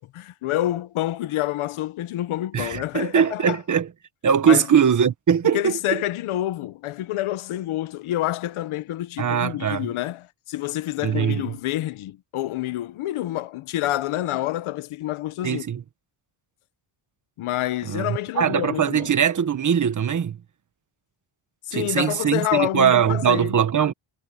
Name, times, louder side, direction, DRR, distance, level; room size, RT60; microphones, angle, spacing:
voice 1, 0.0-3.6 4.4-4.7 5.5-15.6 17.4-19.1 21.6-23.6, left 14 dB, 75° left, 1.1 m, -28 dB
voice 2, 2.5-3.9 4.2-6.0 9.2-9.9 11.0-11.5 15.4-15.8 17.9-20.4 21.7-23.9, right 8 dB, 35° right, 1.5 m, -21 dB
cardioid pair, 160°, 49 cm